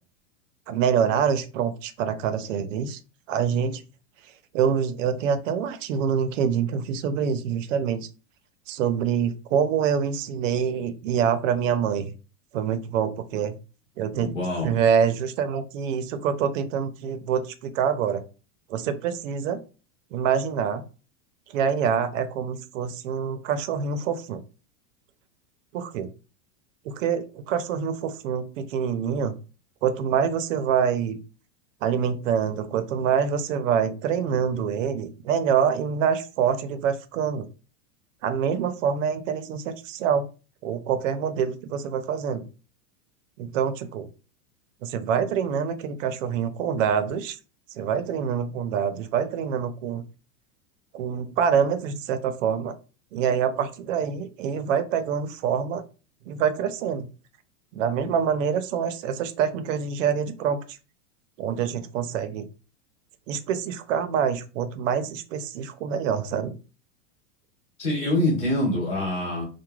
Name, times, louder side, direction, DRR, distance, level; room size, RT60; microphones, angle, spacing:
voice 1, 0.7-3.0 3.3-3.8 4.5-8.1 8.7-12.1 12.5-13.5 14.0-14.3 14.6-18.2 18.7-19.6 20.1-20.8 21.5-24.4 25.7-26.1 26.9-29.3 29.8-31.2 31.8-37.5 38.2-40.3 40.6-42.5 43.4-44.1 44.8-47.4 47.8-50.0 50.9-52.7 53.1-55.8 56.3-57.0 57.7-60.6 61.4-62.5 63.3-66.5, right 7 dB, 80° right, 10 dB, 0.5 m, -25 dB
voice 2, 14.2-14.8 67.8-69.4, left 1 dB, 15° left, -4 dB, 0.9 m, -25 dB
3.1 x 2.1 x 2.3 m, 0.34 s
supercardioid pair, 175°, 38 cm